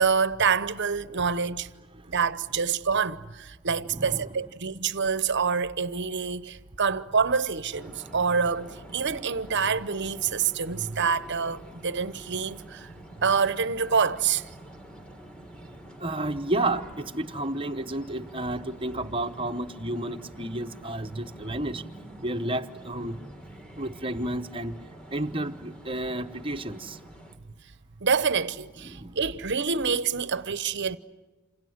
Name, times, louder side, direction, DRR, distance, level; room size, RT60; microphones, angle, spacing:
voice 1, 0.0-1.7 2.1-12.9 13.2-14.4 28.0-31.0, right 5 dB, 50° right, 0.9 m, -26 dB
voice 2, 3.9-4.3 8.0-8.2 16.0-21.8 22.2-23.2 23.8-24.8 25.1-27.0 28.8-29.2, right 1 dB, 25° right, 1.0 m, -31 dB
sound 1, 7.7-27.4, right 1 dB, 5° left, 2.4 m, -47 dB
28.0 x 26.5 x 8.0 m
head